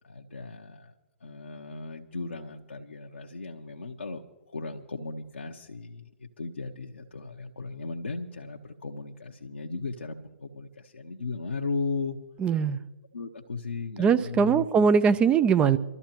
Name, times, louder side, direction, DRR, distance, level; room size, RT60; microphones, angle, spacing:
voice 1, 0.0-0.9 1.2-4.2 4.5-12.2 13.1-14.9, left 4 dB, 75° left, 1.0 m, -36 dB
voice 2, 12.4-12.8 14.0-15.8, right 6 dB, 15° right, 0.6 m, -21 dB
25.5 x 13.5 x 3.0 m
figure-of-eight pair, 120°, 6 cm